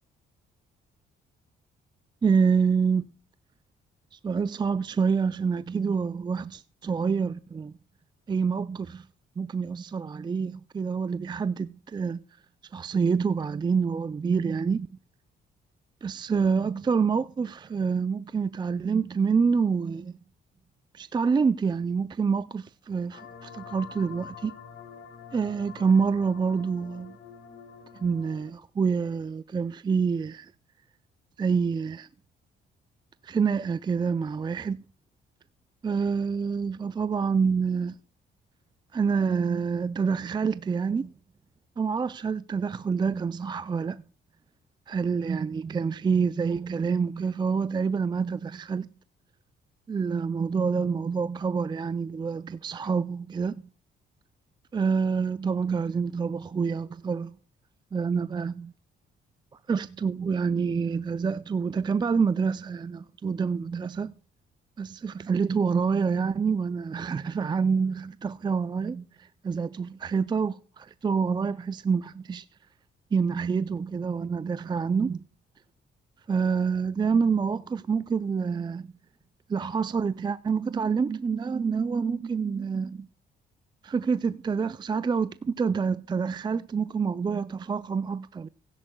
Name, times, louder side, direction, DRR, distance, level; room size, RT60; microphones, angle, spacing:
voice 1, 2.2-3.1 4.1-7.7 8.3-9.1 9.4-12.2 12.7-14.9 16.0-20.2 20.9-24.5 25.3-27.2 28.0-30.5 31.4-32.1 33.2-34.8 35.8-38.0 38.9-41.1 41.8-44.0 44.9-48.9 49.9-53.6 54.7-57.4 57.9-58.7 59.7-64.1 64.8-72.5 73.1-75.2 76.3-78.9 79.5-83.1 83.8-88.5, right 5 dB, 20° right, 0.4 m, -27 dB
sound 1, 23.1-28.5, left 6 dB, 70° left, 2.8 m, -46 dB
16.5 x 10.0 x 2.2 m
cardioid pair, 90°, 20 cm